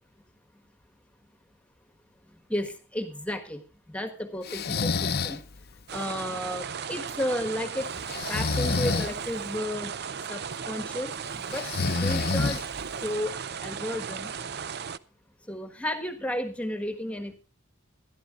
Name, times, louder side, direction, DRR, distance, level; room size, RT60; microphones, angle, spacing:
voice 1, 2.5-3.6 3.9-4.9 5.2-5.4 5.9-7.9 8.3-9.9 10.3-10.4 10.7-11.1 11.5-11.7 12.0-12.6 13.0-13.3 13.6-14.3 15.5-17.3, left 1 dB, 5° left, 8 dB, 1.4 m, -32 dB
Breathing, 4.5-5.4 8.1-9.1 11.5-12.9, left 4 dB, 45° left, 0.7 m, -27 dB
sound 1, 5.9-15.0, right 6 dB, 50° right, 0.5 m, -36 dB
21.5 x 12.5 x 2.5 m, 0.33 s
head